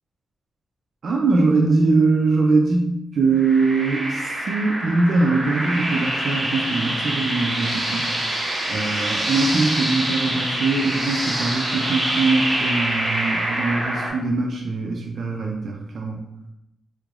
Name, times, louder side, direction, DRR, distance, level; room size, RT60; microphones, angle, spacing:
voice 1, 1.0-8.2 8.7-16.2, right 3 dB, 55° right, 0 dB, 0.4 m, -22 dB
sound 1, 3.3-14.1, right 1 dB, 30° right, 1.3 m, -25 dB
3.7 x 3.2 x 2.4 m, 0.86 s
wide cardioid pair, 140°, 0 cm